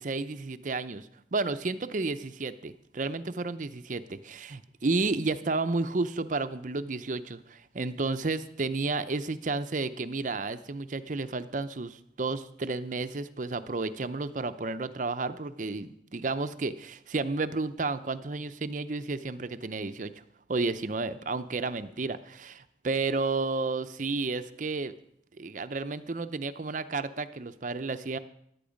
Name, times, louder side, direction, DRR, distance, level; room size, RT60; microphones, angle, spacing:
voice 1, 0.0-20.1 20.5-24.9 25.4-28.2, right 3 dB, 45° right, 12 dB, 0.6 m, -32 dB
15.5 x 11.5 x 5.2 m, 0.73 s
head